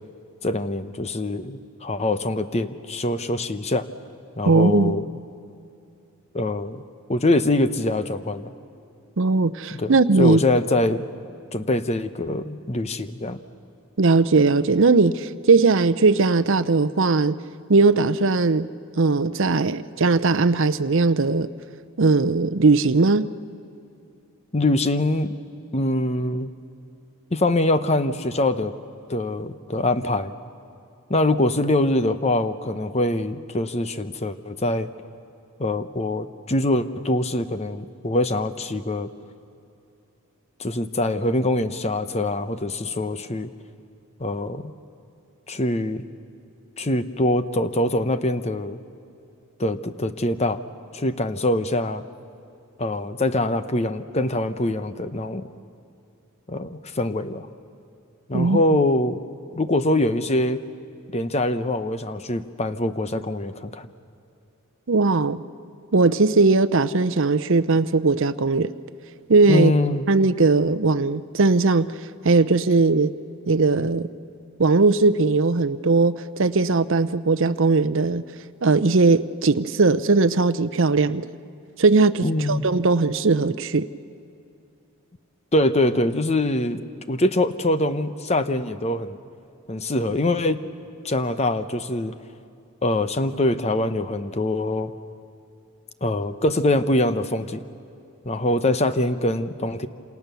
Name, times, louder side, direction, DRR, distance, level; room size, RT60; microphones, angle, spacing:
voice 1, 0.4-3.9 4.4-5.0 6.3-6.8 7.1-8.5 9.7-11.1 11.5-13.4 24.5-25.3 25.7-26.5 27.3-28.7 29.1-30.3 31.1-34.9 35.6-39.1 40.6-43.5 44.2-44.7 45.5-46.0 46.8-48.8 49.6-50.6 50.9-52.0 52.8-55.5 56.5-57.5 58.3-59.2 59.5-60.6 61.1-63.9 69.5-70.1 82.2-82.6 85.5-86.8 87.1-89.2 89.7-90.6 91.0-92.1 92.8-94.9 96.0-97.6 98.2-99.9, left 1 dB, 30° left, 0.9 m, -23 dB
voice 2, 4.5-5.0 9.2-10.4 14.0-17.4 17.7-18.7 19.0-21.5 22.0-23.3 58.3-58.6 64.9-65.4 65.9-68.7 69.3-69.7 70.1-71.9 72.2-73.1 73.5-74.1 74.6-78.2 78.6-81.2 81.8-83.9, right 3 dB, 60° right, 0.7 m, -19 dB
28.0 x 27.0 x 7.0 m
head